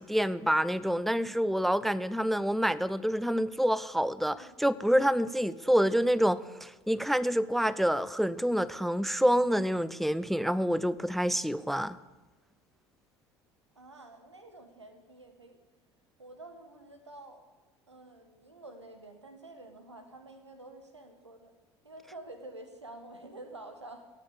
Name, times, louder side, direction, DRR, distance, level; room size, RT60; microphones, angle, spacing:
voice 1, 0.0-12.0, equal, ahead, 0.4 m, -27 dB
voice 2, 13.7-15.6 16.2-17.4 17.9-21.5 21.8-24.1, right 2 dB, 85° right, 1.5 m, -49 dB
17.5 x 8.2 x 7.2 m
figure-of-eight pair, 65°, 14 cm